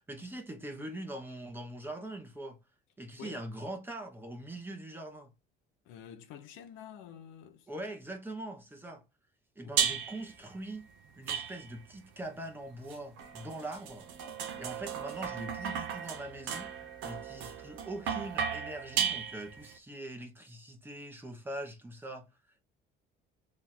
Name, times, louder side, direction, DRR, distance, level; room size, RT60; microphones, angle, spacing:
voice 1, 0.0-2.6 3.0-5.3 7.7-9.0 9.6-10.8 11.2-14.1 14.6-16.7 17.0-22.3, right 1 dB, 10° right, 1.1 m, -42 dB
voice 2, 5.8-7.7 9.6-10.0, left 8 dB, 80° left, 1.0 m, -49 dB
sound 1, 9.8-10.3 11.3-11.9 12.9-19.7, right 8 dB, 75° right, 0.9 m, -35 dB
3.6 x 3.2 x 4.4 m
cardioid pair, 130°, 20 cm